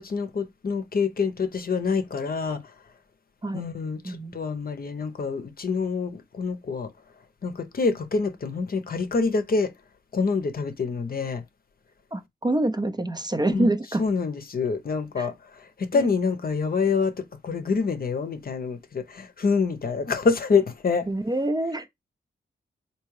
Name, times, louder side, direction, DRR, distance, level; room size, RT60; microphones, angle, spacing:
voice 1, 0.0-2.7 3.5-6.9 7.4-9.7 10.1-11.4 13.5-13.7 14.0-21.1, left 4 dB, 50° left, 0.7 m, -26 dB
voice 2, 4.0-4.4 12.1-14.0 15.2-15.3 15.9-16.1 21.1-21.9, right 1 dB, 20° right, 0.5 m, -26 dB
3.5 x 2.8 x 3.1 m
cardioid pair, 55°, 20 cm